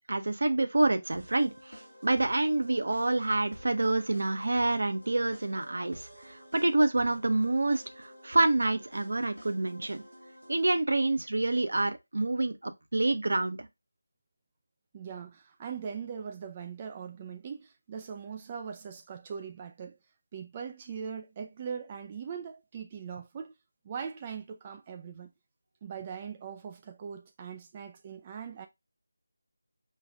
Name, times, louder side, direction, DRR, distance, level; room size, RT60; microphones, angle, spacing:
voice 1, 0.1-10.0 10.5-13.6, right 2 dB, 55° right, 0.7 m, -27 dB
sound 1, 1.1-10.7, equal, 90° right, 1.7 m, -51 dB
voice 2, 14.9-20.0 20.3-23.5 23.8-25.3 25.8-28.7, right 7 dB, 20° right, 0.4 m, -40 dB
5.4 x 2.5 x 3.4 m
figure-of-eight pair, 160°, 0 cm